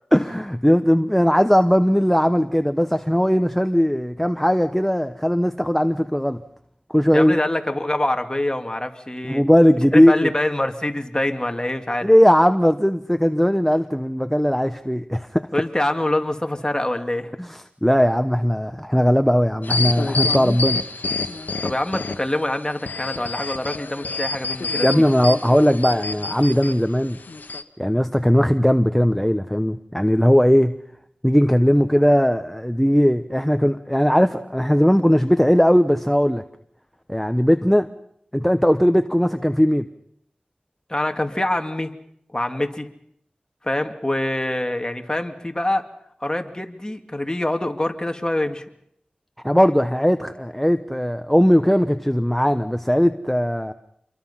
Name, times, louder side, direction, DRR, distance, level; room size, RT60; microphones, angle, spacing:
voice 1, 0.1-6.4 6.9-7.4 9.2-10.3 12.0-15.5 17.4-20.8 24.8-27.2 27.8-30.7 31.2-36.4 37.1-37.9 38.3-39.9 49.4-53.7, equal, 5° left, 8 dB, 1.1 m, -18 dB
voice 2, 7.1-9.4 9.9-12.1 15.5-17.3 21.6-24.9 40.9-41.9 42.3-42.9 43.6-45.9 46.2-48.6, left 1 dB, 25° left, 5 dB, 2.5 m, -25 dB
sound 1, 19.6-22.4 22.8-26.7 27.3-27.6, left 3 dB, 85° left, 1.1 m, -27 dB
28.0 x 23.0 x 5.7 m, 0.70 s
wide cardioid pair, 45°, 3 cm